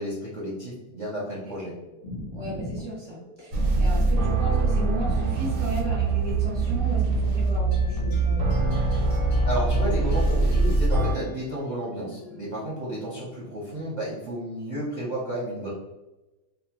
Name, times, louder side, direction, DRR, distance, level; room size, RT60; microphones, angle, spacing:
voice 1, 0.0-1.7 9.4-15.7, right 1 dB, 50° right, -6 dB, 0.5 m, -32 dB
sound 1, 1.6-8.8 9.4-10.3 11.0-11.1, equal, 60° left, 0.8 m, -39 dB
voice 2, 2.3-8.6, right 1 dB, 30° left, -7 dB, 0.5 m, -35 dB
sound 2, 3.5-11.1, right 3 dB, 85° right, 1.2 m, -23 dB
sound 3, 7.7-12.8, left 2 dB, 90° left, 0.3 m, -42 dB
2.8 x 2.1 x 2.8 m, 1.0 s
omnidirectional pair, 1.7 m